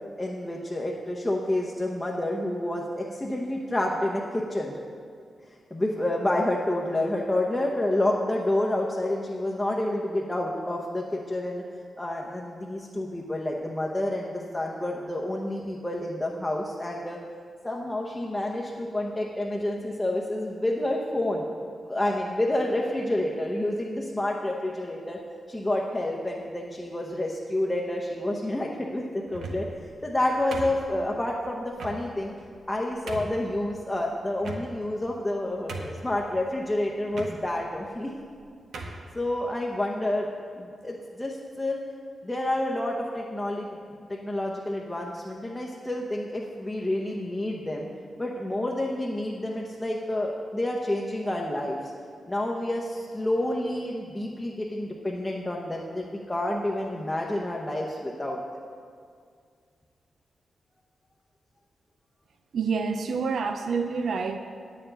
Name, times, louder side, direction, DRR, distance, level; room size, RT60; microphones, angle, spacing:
voice 1, 0.2-4.7 5.7-11.6 12.0-17.2 17.6-21.5 21.8-25.2 25.5-29.7 30.0-32.3 32.7-38.1 38.7-40.3 40.5-41.8 42.2-43.8 44.1-47.9 48.2-51.9 52.3-58.4, left 1 dB, 10° left, -2 dB, 0.8 m, -29 dB
sound 1, 29.3-29.8 30.5-31.2 31.8-32.0 32.6-32.7 33.1-33.4 34.4-35.0 35.3-35.4 35.7-36.2 37.1-37.3 38.2-38.3 38.7-39.0, right 2 dB, 85° right, 1.2 m, -37 dB
voice 2, 62.5-64.4, right 5 dB, 65° right, 7 dB, 0.6 m, -27 dB
9.2 x 6.9 x 8.9 m, 2.2 s
wide cardioid pair, 150°, 0 cm